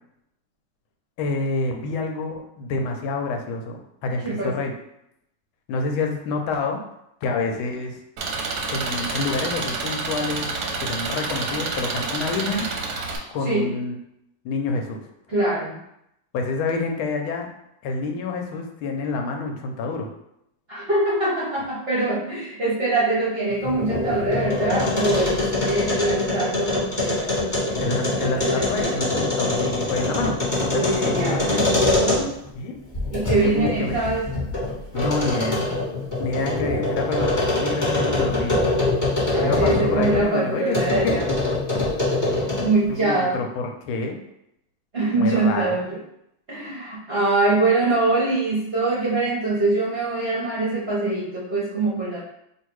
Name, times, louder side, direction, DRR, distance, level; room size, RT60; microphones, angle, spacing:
voice 1, 1.2-4.7 5.7-6.8 7.2-8.0 8.7-10.5 10.8-12.7 13.3-14.0 14.4-15.0 16.3-17.5 17.8-20.1 27.8-31.6 32.5-32.8 33.4-34.0 34.9-35.6 36.2-38.6 39.4-41.2 41.8-41.9 42.9-44.2 45.1-45.8, left 3 dB, 85° left, 3 dB, 1.5 m, -27 dB
voice 2, 4.2-4.6 13.4-13.7 15.3-15.8 20.7-28.9 30.7-32.4 33.1-34.3 39.3-41.3 42.6-43.4 44.9-46.0 46.5-52.2, right 2 dB, 50° right, -7 dB, 0.7 m, -24 dB
Engine, 8.2-13.2, right 3 dB, 65° right, 1.1 m, -28 dB
sound 1, 23.5-32.5 32.9-40.2 40.7-42.8, left 2 dB, 25° left, 1.4 m, -24 dB
3.1 x 2.8 x 4.5 m, 0.79 s
omnidirectional pair, 2.2 m